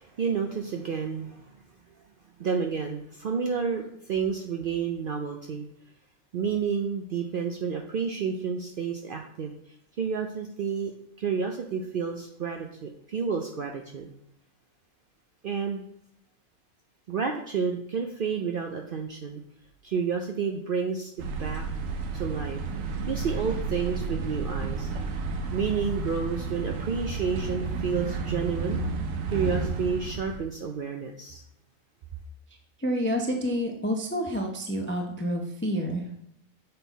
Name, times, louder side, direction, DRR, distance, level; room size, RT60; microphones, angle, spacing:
voice 1, 0.0-1.4 2.4-3.8 4.1-5.6 6.3-9.5 10.0-10.9 11.2-14.1 15.4-15.8 17.1-19.4 19.8-21.1 21.4-21.6 22.1-22.6 23.1-24.9 25.5-28.8 29.3-31.4, right 6 dB, 60° right, 3 dB, 0.5 m, -30 dB
sound 1, 21.2-30.4, right 4 dB, 75° right, 1.1 m, -31 dB
voice 2, 32.8-36.0, equal, 20° left, 2 dB, 0.3 m, -28 dB
6.7 x 3.8 x 4.0 m, 0.73 s
omnidirectional pair, 1.4 m